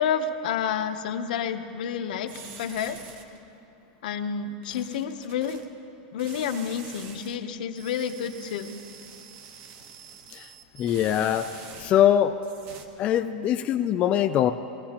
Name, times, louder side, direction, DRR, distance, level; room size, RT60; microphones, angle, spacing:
voice 1, 0.0-2.3 2.6-3.0 4.0-5.6 6.1-8.7, left 7 dB, 70° left, 7 dB, 0.8 m, -29 dB
sound 1, 2.3-3.4 4.6-5.6 6.2-7.3 7.7-12.1 12.4-12.9, right 6 dB, 40° right, 1.0 m, -46 dB
voice 2, 10.8-12.4 13.0-14.5, left 10 dB, 25° left, 7 dB, 0.3 m, -23 dB
20.5 x 15.5 x 2.9 m, 2.8 s
supercardioid pair, 155°, 5 cm